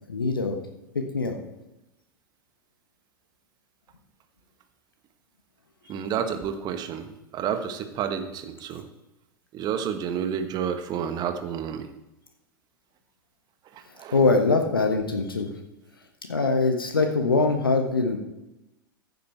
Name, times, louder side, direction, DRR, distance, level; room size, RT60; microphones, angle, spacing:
voice 1, 0.1-0.6 0.9-1.4 14.1-15.5 16.3-18.2, left 3 dB, 80° left, 5 dB, 1.3 m, -23 dB
voice 2, 5.9-8.9 9.5-11.9 13.7-14.2, right 8 dB, 35° right, 8 dB, 1.3 m, -30 dB
14.5 x 8.3 x 4.5 m, 0.95 s
figure-of-eight pair, 85°, 12 cm